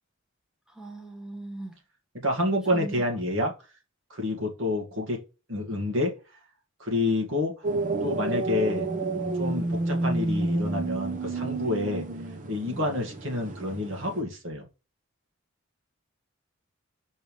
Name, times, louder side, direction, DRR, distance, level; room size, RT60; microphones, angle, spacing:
voice 1, 0.7-1.8 2.7-2.9, right 2 dB, 5° right, 1.1 m, -39 dB
voice 2, 2.1-3.5 4.1-5.2 5.5-6.2 6.8-7.6 8.0-8.9 9.3-12.1 12.5-14.7, left 2 dB, 65° right, 2.0 m, -28 dB
sound 1, 7.6-14.2, right 2 dB, 40° right, 0.8 m, -30 dB
5.5 x 3.3 x 5.4 m
head